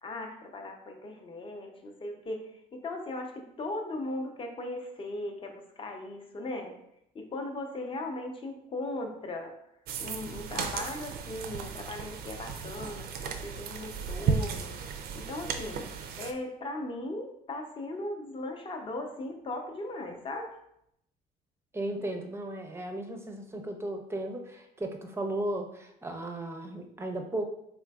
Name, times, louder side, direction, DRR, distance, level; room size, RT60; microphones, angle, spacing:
voice 1, 0.0-6.7 7.1-9.5 10.0-14.7 15.1-15.9 16.2-20.5, left 2 dB, 30° left, 3 dB, 0.6 m, -38 dB
sound 1, 9.9-16.3, right 6 dB, 65° right, 0.4 m, -35 dB
voice 2, 21.7-27.4, right 1 dB, 15° right, 4 dB, 0.5 m, -35 dB
3.7 x 3.4 x 2.3 m, 0.76 s
cardioid pair, 110°, 17 cm